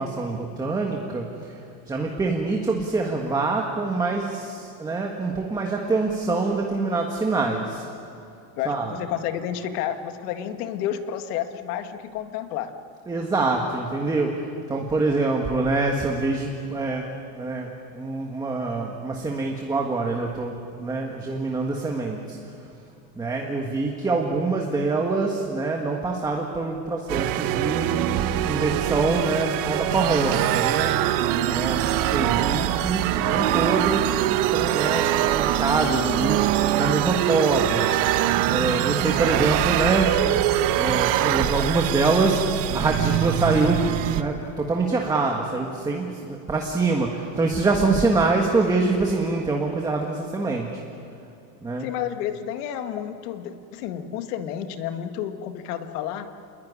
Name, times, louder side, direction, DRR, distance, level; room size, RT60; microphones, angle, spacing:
voice 1, 0.0-1.6 1.9-7.8 8.6-8.9 13.1-20.5 20.8-22.4 23.2-28.0 28.4-31.0 31.4-36.4 36.7-37.9 38.4-40.1 40.7-50.8 51.6-51.9, right 3 dB, 10° right, 1 dB, 1.5 m, -25 dB
voice 2, 8.6-12.7 31.5-31.8 51.8-56.3, left 10 dB, 70° left, 7 dB, 2.2 m, -31 dB
sound 1, 27.1-44.2, right 12 dB, 45° right, 1.2 m, -23 dB
28.5 x 21.0 x 9.7 m, 2.7 s
supercardioid pair, 170°, 47 cm